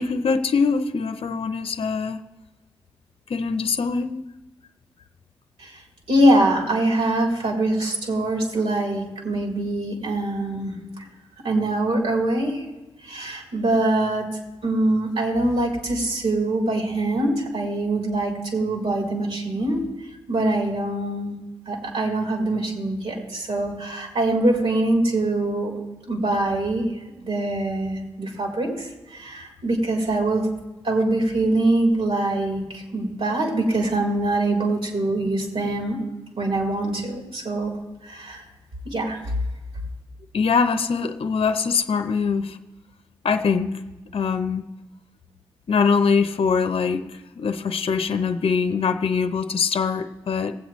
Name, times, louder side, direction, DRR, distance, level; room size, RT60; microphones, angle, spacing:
voice 1, 0.0-2.2 3.3-4.2 40.3-42.6 43.2-43.8 44.1-44.6 45.7-50.6, left 5 dB, 60° left, 0.7 m, -23 dB
voice 2, 6.1-11.1 11.4-12.6 13.0-14.2 14.6-19.8 20.3-21.4 21.7-25.7 26.1-26.9 27.2-30.4 30.8-36.0 36.4-37.7 38.0-38.4 38.9-39.2, right 1 dB, 65° right, 3.4 m, -23 dB
19.0 x 8.0 x 3.1 m
supercardioid pair, 40°, 11 cm